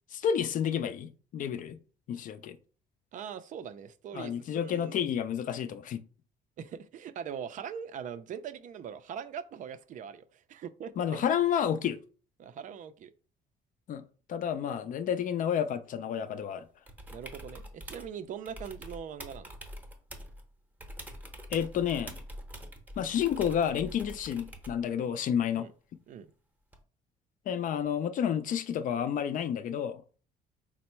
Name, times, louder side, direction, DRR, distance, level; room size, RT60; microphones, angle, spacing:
voice 1, 0.1-1.8 2.1-2.6 4.1-6.0 11.0-12.0 13.9-16.6 21.5-22.2 23.0-25.7 27.5-30.0, left 8 dB, 50° left, 0.4 m, -30 dB
voice 2, 3.1-5.0 6.6-11.3 12.4-13.1 17.1-19.5 25.5-25.7 26.1-26.3, right 8 dB, 50° right, 0.4 m, -42 dB
sound 1, 16.9-18.1 18.5-20.4 20.8-24.8 26.7-26.8, equal, 10° right, 0.7 m, -45 dB
4.3 x 2.0 x 4.3 m
cardioid pair, 110°, 17 cm